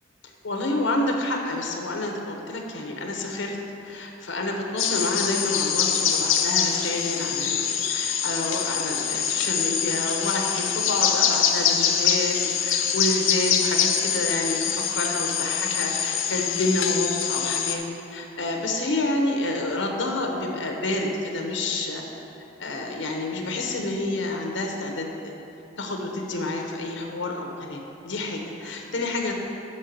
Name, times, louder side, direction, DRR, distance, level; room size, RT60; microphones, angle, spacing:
voice 1, 0.2-3.6 3.8-22.0 22.6-25.3 25.8-29.3, left 2 dB, 70° left, 1 dB, 0.9 m, -28 dB
sound 1, 4.8-17.8, left 8 dB, 90° left, 0.6 m, -24 dB
5.8 x 5.4 x 6.7 m, 2.9 s
head